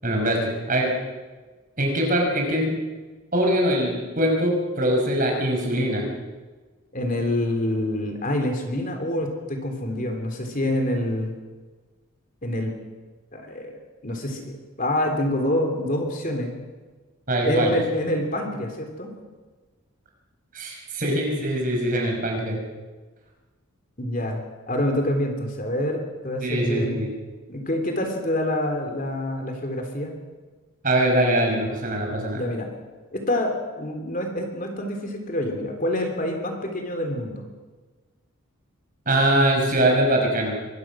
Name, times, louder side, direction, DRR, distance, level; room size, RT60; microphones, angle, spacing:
voice 1, 0.0-0.9 1.8-2.8 3.3-6.1 17.3-17.8 20.5-22.6 26.4-27.1 30.8-32.4 39.1-40.6, right 1 dB, 40° right, 0 dB, 5.5 m, -22 dB
voice 2, 6.9-11.3 12.4-12.7 13.3-16.6 17.4-19.1 24.0-26.9 27.5-30.2 32.3-32.7 33.1-37.5, left 1 dB, 40° left, 3 dB, 3.3 m, -26 dB
24.0 x 21.0 x 6.2 m, 1.3 s
head